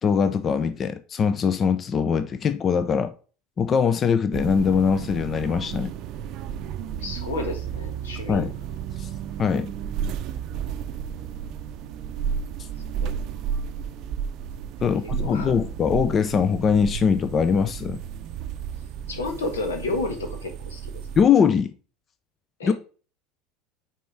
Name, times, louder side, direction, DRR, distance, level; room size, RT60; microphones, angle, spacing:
voice 1, 0.0-3.1 3.6-5.9 8.3-8.5 9.0-9.1 9.4-9.7 14.8-18.0 21.2-21.7 22.6-22.7, left 6 dB, 35° left, 0.5 m, -22 dB
sound 1, 4.3-21.2, right 8 dB, 55° right, 0.5 m, -33 dB
voice 2, 7.0-8.5 13.0-13.2 14.8-15.5 19.1-20.9 22.6-22.7, left 2 dB, 90° left, 1.4 m, -31 dB
5.2 x 4.4 x 4.7 m
hypercardioid pair, 85°, 0 cm